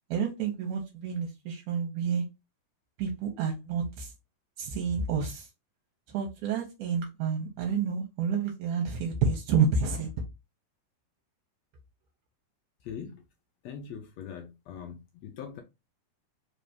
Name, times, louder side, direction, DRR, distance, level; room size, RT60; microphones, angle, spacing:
voice 1, 0.1-2.2 3.0-4.1 4.6-5.5 6.1-10.1, right 6 dB, 80° right, 2.2 m, -29 dB
voice 2, 12.8-13.2 13.6-15.6, left 7 dB, 75° left, 1.6 m, -41 dB
4.8 x 3.3 x 2.7 m
omnidirectional pair, 3.7 m